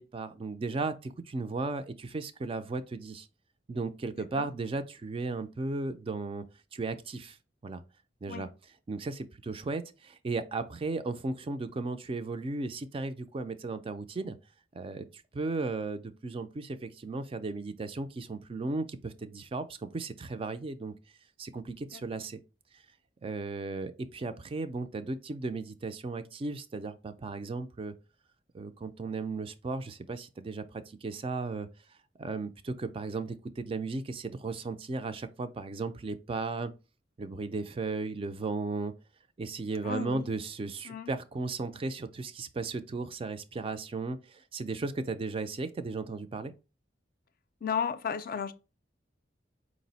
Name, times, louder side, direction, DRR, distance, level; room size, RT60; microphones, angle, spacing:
voice 1, 0.0-3.3 3.7-6.4 6.7-7.4 7.6-7.8 8.2-8.5 8.9-14.4 14.7-21.0 21.4-22.4 23.2-27.9 28.5-31.7 32.2-36.7 37.2-38.9 39.4-46.5, right 3 dB, 30° right, 0.3 m, -35 dB
voice 2, 4.2-4.5 8.3-8.5 21.9-22.2 39.8-40.3 40.8-41.1 47.6-48.5, left 6 dB, 50° left, 0.4 m, -34 dB
4.8 x 2.0 x 3.9 m
head